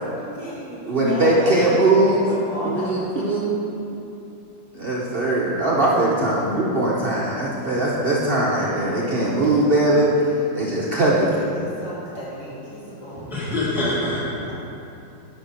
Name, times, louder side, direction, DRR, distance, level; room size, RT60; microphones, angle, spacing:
voice 1, 0.2-1.7 2.0-3.0 5.1-5.2 9.9-10.4 11.3-13.2 14.5-14.6, equal, 45° left, -9 dB, 2.2 m, -34 dB
voice 2, 0.9-2.3 2.6-3.6 4.7-10.1 10.5-11.3, right 2 dB, 85° right, -5 dB, 0.5 m, -20 dB
voice 3, 13.1-14.5, left 1 dB, ahead, -8 dB, 1.3 m, -25 dB
9.8 x 3.3 x 5.6 m, 2.8 s
omnidirectional pair, 2.0 m